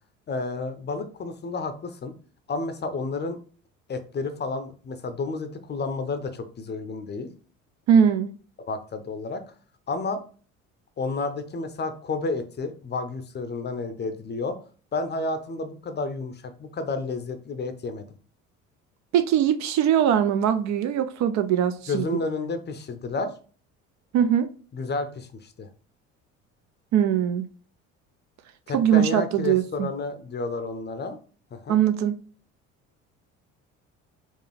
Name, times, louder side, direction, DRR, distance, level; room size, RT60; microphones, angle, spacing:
voice 1, 0.3-2.1 2.5-3.4 3.9-7.3 8.7-9.4 9.9-10.2 11.0-14.6 14.9-18.1 21.9-23.3 24.7-25.7 28.7-31.2 31.5-31.8, left 3 dB, 25° left, 0.6 m, -31 dB
voice 2, 7.9-8.3 19.1-22.2 24.1-24.5 26.9-27.4 28.7-29.9 31.7-32.2, right 9 dB, 45° right, 0.4 m, -21 dB
4.3 x 2.4 x 3.2 m
hypercardioid pair, 55°, 39 cm